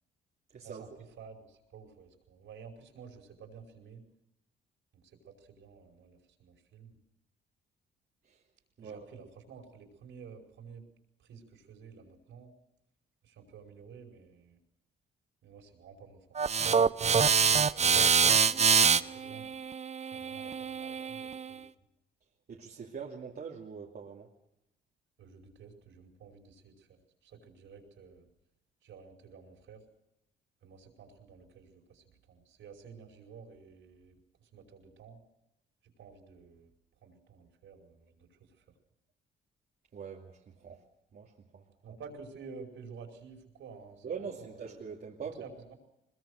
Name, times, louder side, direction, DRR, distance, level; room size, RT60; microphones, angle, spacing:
voice 1, 0.5-0.8 8.2-8.4 8.8-9.0 22.5-24.3 39.9-40.8 41.1-41.7 44.0-45.5, right 6 dB, 50° right, -2 dB, 2.6 m, -43 dB
voice 2, 1.2-4.0 4.9-7.0 8.8-10.9 11.2-12.5 13.2-14.6 15.4-17.1 17.5-19.5 20.0-21.6 25.2-28.3 28.8-29.8 30.6-35.2 35.8-36.7 37.0-38.6 41.8-44.6 45.4-45.7, right 5 dB, 75° right, 3 dB, 5.2 m, -52 dB
sound 1, 16.4-21.5, right 6 dB, 35° right, 0.7 m, -26 dB
21.5 x 21.5 x 6.5 m, 0.86 s
cardioid pair, 90°, 20 cm